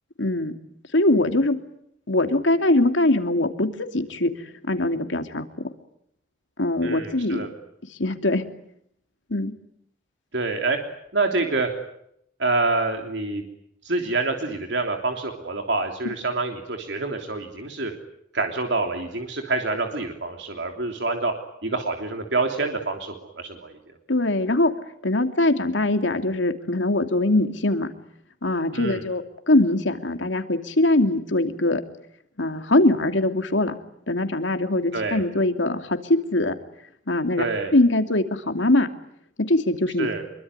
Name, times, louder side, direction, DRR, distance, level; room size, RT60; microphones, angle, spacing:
voice 1, 0.2-0.5 0.9-1.6 2.1-4.3 4.7-5.4 6.6-7.4 8.0-8.4 9.3-9.5 16.0-16.1 24.1-24.7 25.0-27.9 28.4-31.8 32.4-33.7 34.1-36.5 37.1-37.4 37.7-38.9 39.5-40.1, left 2 dB, 90° left, 7 dB, 2.7 m, -22 dB
voice 2, 6.8-7.5 10.3-10.8 11.1-11.7 12.4-13.4 13.8-17.9 18.3-21.3 21.6-23.7 28.7-29.0 34.9-35.2 37.4-37.7 40.0-40.2, right 3 dB, 70° right, 3 dB, 3.3 m, -26 dB
26.0 x 23.5 x 9.7 m, 0.74 s
head